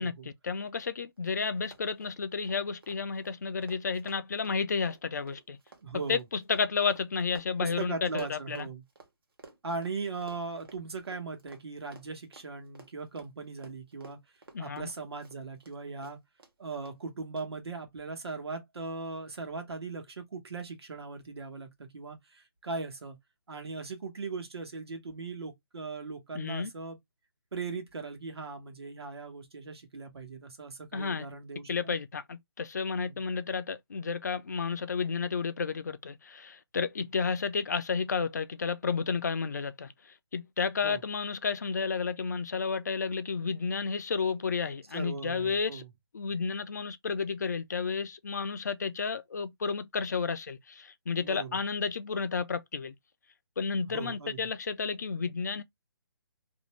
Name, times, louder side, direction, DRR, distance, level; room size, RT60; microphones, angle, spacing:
voice 1, 0.0-5.6 6.1-8.7 14.5-14.9 26.3-26.7 30.9-31.3 31.7-45.8 46.1-52.9 53.6-55.6, left 5 dB, 45° left, 0.3 m, -32 dB
Run, 0.8-0.9 1.2-1.3 1.6-9.1 9.4-15.7 16.0-16.5 16.9-17.0 17.4-17.5, right 3 dB, 65° right, 0.9 m, -53 dB
voice 2, 5.8-6.3 7.6-8.8 9.6-14.2 14.6-16.2 16.6-23.2 23.5-27.0 27.5-32.0 33.0-33.2 40.8-41.0 44.9-45.9 51.2-51.6 53.8-54.5, right 4 dB, 85° right, 1.0 m, -39 dB
2.5 x 2.1 x 3.0 m
hypercardioid pair, 175°, 13 cm